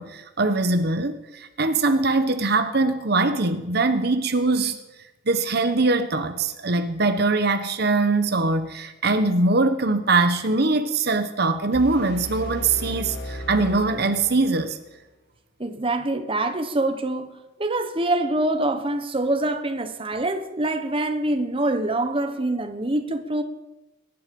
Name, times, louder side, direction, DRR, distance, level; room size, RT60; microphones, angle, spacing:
voice 1, 0.0-4.8 5.3-14.8, right 3 dB, 55° right, 1.0 m, -22 dB
sound 1, 11.7-14.8, left 1 dB, 60° left, 1.8 m, -35 dB
voice 2, 15.6-23.4, right 2 dB, 30° right, 1.2 m, -25 dB
23.0 x 10.5 x 5.3 m
head